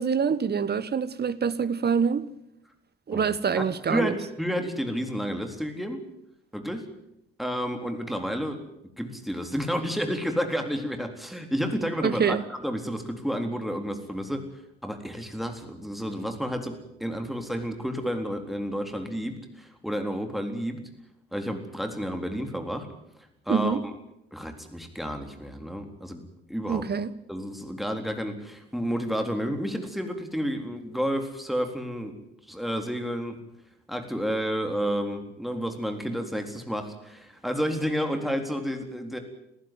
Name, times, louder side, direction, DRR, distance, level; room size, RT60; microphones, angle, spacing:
voice 1, 0.0-2.3 3.1-4.1 12.0-12.4 23.5-23.8 26.7-27.1, right 6 dB, 35° right, 1.4 m, -25 dB
voice 2, 3.9-6.0 6.5-6.8 7.4-8.6 9.0-12.4 12.6-14.4 14.8-20.8 21.3-22.9 23.5-23.9 24.3-26.2 26.5-26.8 27.3-32.1 32.5-33.4 33.9-39.2, equal, ahead, 3.9 m, -30 dB
23.5 x 15.0 x 9.6 m
figure-of-eight pair, 50°, 30 cm